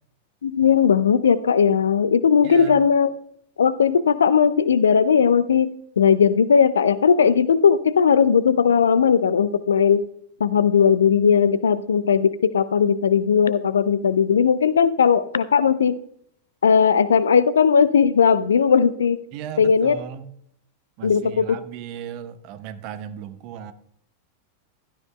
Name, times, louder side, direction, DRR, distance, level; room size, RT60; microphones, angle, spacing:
voice 1, 0.4-3.1 3.6-10.0 10.4-16.0 16.6-19.2 19.6-20.0 21.0-21.4, left 7 dB, 70° left, 16 dB, 0.5 m, -18 dB
voice 2, 2.4-2.8 19.3-20.3 21.0-23.7, right 9 dB, 45° right, 12 dB, 0.9 m, -36 dB
16.0 x 12.5 x 2.2 m, 0.70 s
figure-of-eight pair, 90°, 0 cm